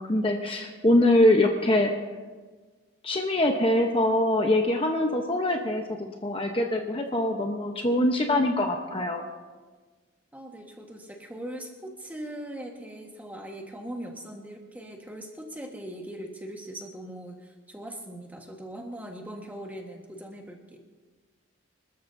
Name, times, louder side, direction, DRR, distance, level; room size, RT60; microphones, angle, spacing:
voice 1, 0.0-1.9 3.0-9.2, left 1 dB, 25° left, 3 dB, 0.9 m, -23 dB
voice 2, 10.3-20.8, right 1 dB, 10° right, 1 dB, 1.5 m, -40 dB
26.5 x 13.5 x 2.7 m, 1.4 s
head